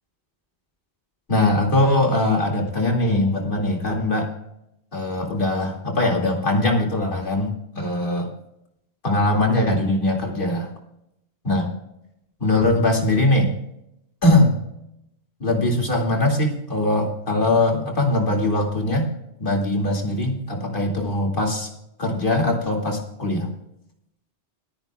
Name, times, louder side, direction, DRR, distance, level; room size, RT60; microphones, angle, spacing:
voice 1, 1.3-4.3 4.9-8.3 9.0-10.7 11.4-11.7 12.4-13.5 14.2-14.5 15.4-19.1 19.4-21.7 22.0-23.5, left 1 dB, 50° left, 1 dB, 2.7 m, -21 dB
29.0 x 9.7 x 2.4 m, 0.80 s
omnidirectional pair, 1.1 m